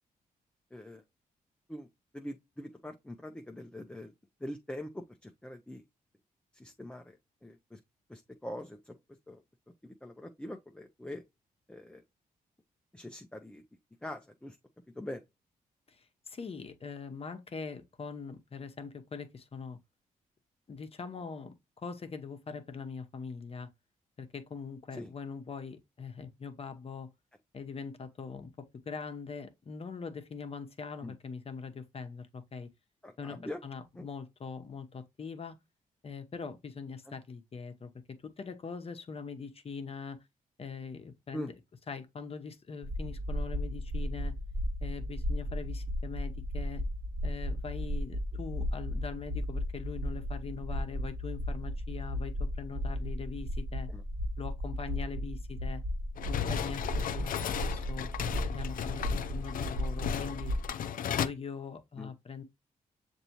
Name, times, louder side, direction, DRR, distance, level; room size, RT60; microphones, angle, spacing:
voice 1, 0.7-1.0 1.7-1.9 2.1-4.1 4.4-5.8 6.5-7.8 8.1-9.0 9.3-9.4 9.8-11.2 11.7-12.0 12.9-13.6 14.0-14.6 14.9-15.2 24.9-25.1 31.0-31.1 33.0-33.6 34.0-34.1 37.1-37.2 41.3-41.5 53.9-54.0 62.0-62.1, left 1 dB, 5° left, 0.5 m, -43 dB
voice 2, 15.9-19.8 20.7-23.7 24.2-27.1 27.5-28.5 28.9-32.7 33.2-35.6 36.0-37.9 38.2-40.2 40.6-41.5 41.9-44.3 44.8-46.8 47.2-53.9 54.4-55.8 56.3-58.1 58.5-60.5 61.1-62.4, left 5 dB, 40° left, 0.8 m, -42 dB
sound 1, 42.8-60.7, equal, 45° right, 1.1 m, -35 dB
sound 2, 56.2-61.3, left 9 dB, 70° left, 0.4 m, -35 dB
6.6 x 2.7 x 2.9 m
cardioid pair, 75°, 15 cm